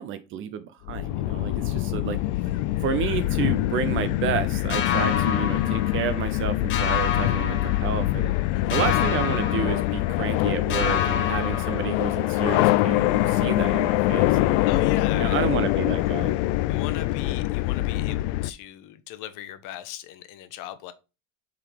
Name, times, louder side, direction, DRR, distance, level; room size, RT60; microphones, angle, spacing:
voice 1, 0.0-2.2 2.8-8.3 8.7-14.6 15.2-16.3, right 8 dB, 35° right, 0.4 m, -30 dB
sound 1, 0.9-18.5, left 16 dB, 65° left, 0.5 m, -24 dB
sound 2, 4.7-6.4 6.7-8.4 8.7-10.4 10.7-12.4, left 8 dB, 30° left, 1.0 m, -30 dB
voice 2, 14.7-15.5 16.7-20.9, left 12 dB, 50° left, 0.9 m, -38 dB
7.4 x 3.9 x 3.4 m
cardioid pair, 150°, 40 cm